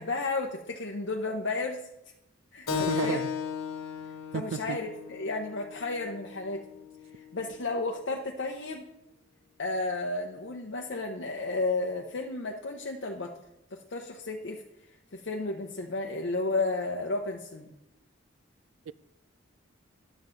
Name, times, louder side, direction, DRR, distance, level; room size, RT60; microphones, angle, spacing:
voice 1, 0.0-1.9 2.5-3.2 4.3-6.6 7.3-8.8 9.6-13.3 13.7-14.6 15.1-17.7, left 3 dB, 60° left, 0.7 m, -32 dB
Keyboard (musical), 2.7-7.8, left 8 dB, 90° left, 1.2 m, -36 dB
voice 2, 2.7-3.3 4.3-4.8 18.9-19.0, right 7 dB, 75° right, 0.3 m, -32 dB
10.0 x 7.5 x 3.9 m
head